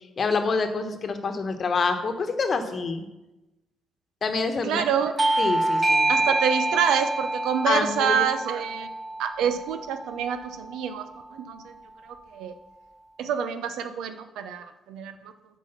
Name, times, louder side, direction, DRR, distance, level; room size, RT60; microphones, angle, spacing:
voice 1, 0.2-3.1 4.2-4.8 5.4-6.1 7.7-8.3, left 4 dB, 45° left, 7 dB, 1.1 m, -26 dB
voice 2, 4.6-5.1 6.1-8.9 9.2-11.1 11.3-11.7 12.0-12.5 13.2-15.3, right 8 dB, 85° right, 9 dB, 0.6 m, -27 dB
Bell / Doorbell, 5.2-10.3, right 2 dB, 25° right, 0.5 m, -26 dB
7.9 x 4.8 x 6.7 m, 1.0 s
cardioid pair, 90°, 0 cm